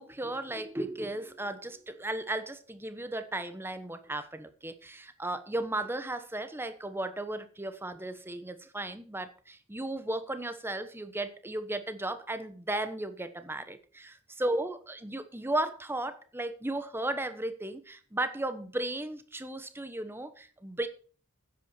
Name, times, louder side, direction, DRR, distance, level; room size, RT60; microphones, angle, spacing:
voice 1, 0.0-20.9, right 1 dB, 10° right, 1.1 m, -35 dB
9.9 x 8.3 x 6.9 m
head